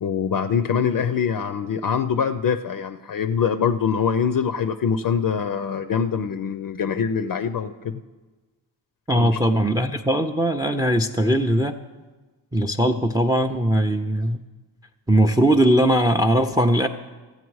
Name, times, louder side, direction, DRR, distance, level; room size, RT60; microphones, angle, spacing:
voice 1, 0.0-8.0 9.2-9.4, left 7 dB, 50° left, 10 dB, 0.5 m, -24 dB
voice 2, 9.1-11.8 12.5-14.4 15.1-16.9, right 1 dB, 10° right, 8 dB, 0.4 m, -20 dB
15.0 x 7.8 x 4.7 m, 1.3 s
cardioid pair, 70°, 43 cm